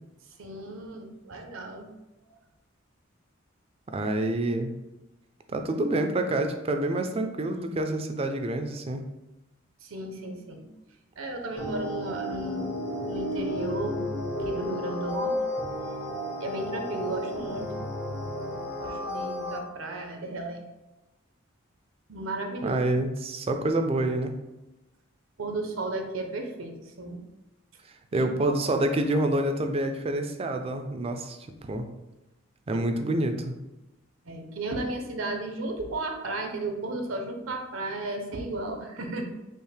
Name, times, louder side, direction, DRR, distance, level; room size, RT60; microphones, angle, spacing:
voice 1, 0.4-1.9 9.8-10.7 11.2-12.7 13.1-14.0 14.4-15.3 16.4-17.7 18.8-20.6 22.1-22.8 25.4-27.2 28.1-28.5 32.7-32.8 34.2-39.2, right 2 dB, 85° right, 3 dB, 0.7 m, -34 dB
voice 2, 3.9-4.7 5.5-9.0 22.6-24.3 28.1-31.9 32.7-33.5, right 1 dB, 30° right, 6 dB, 0.4 m, -27 dB
sound 1, 11.6-19.6, left 1 dB, 55° left, 0.8 m, -32 dB
5.3 x 2.1 x 3.3 m, 0.99 s
head